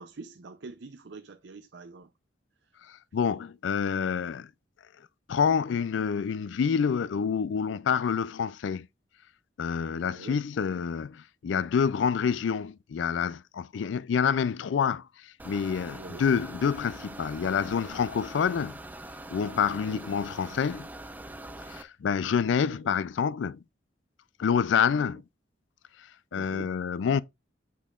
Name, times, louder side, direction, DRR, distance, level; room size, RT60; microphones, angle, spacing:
voice 1, 0.0-2.1 9.9-10.4 16.0-16.2 19.7-20.0 22.2-22.3 22.6-22.8 26.3-26.7, right 3 dB, 70° right, 0.6 m, -45 dB
voice 2, 2.9-4.5 5.3-8.9 9.6-18.7 19.3-20.9 21.7-23.6 24.4-25.2 26.3-27.2, left 7 dB, 90° left, 0.4 m, -27 dB
sound 1, 15.4-21.8, right 1 dB, 10° right, 0.5 m, -43 dB
8.3 x 5.5 x 2.4 m
head